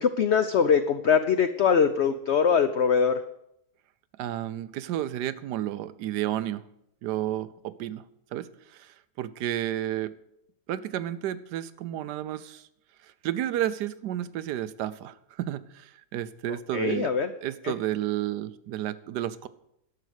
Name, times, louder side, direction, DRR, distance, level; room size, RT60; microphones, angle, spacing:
voice 1, 0.0-3.2 16.7-17.3 17.6-17.7, left 6 dB, 80° left, 10 dB, 0.6 m, -22 dB
voice 2, 4.2-6.6 7.0-8.0 8.3-10.1 10.7-12.6 13.2-17.1 17.4-19.5, right 12 dB, 75° right, 14 dB, 1.1 m, -31 dB
11.5 x 7.6 x 6.4 m, 0.78 s
omnidirectional pair, 1.9 m